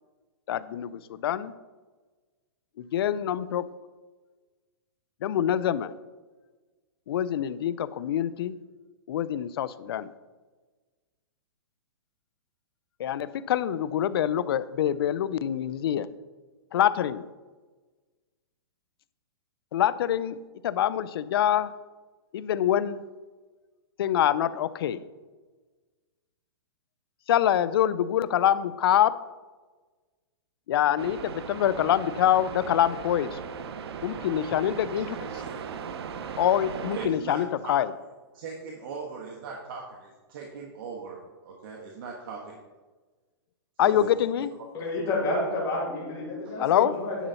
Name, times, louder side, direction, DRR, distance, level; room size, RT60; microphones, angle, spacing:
voice 1, 0.5-1.5 2.9-3.7 5.2-5.9 7.1-8.5 9.1-10.1 13.0-16.1 16.7-17.2 19.7-20.4 20.6-21.7 22.3-23.0 24.0-25.0 27.3-29.2 30.7-33.4 34.0-35.3 36.4-37.9 43.8-44.5 46.6-46.9, left 10 dB, 65° left, 17 dB, 0.4 m, -25 dB
sound 1, 31.0-37.1, right 6 dB, 70° right, 0.7 m, -38 dB
voice 2, 37.0-37.8 38.3-41.2 41.4-42.6 43.8-44.1, right 5 dB, 55° right, -1 dB, 1.3 m, -39 dB
voice 3, 44.7-47.3, left 2 dB, 25° left, -6 dB, 2.3 m, -29 dB
10.0 x 4.0 x 5.6 m, 1.3 s
hypercardioid pair, 150°, 14 cm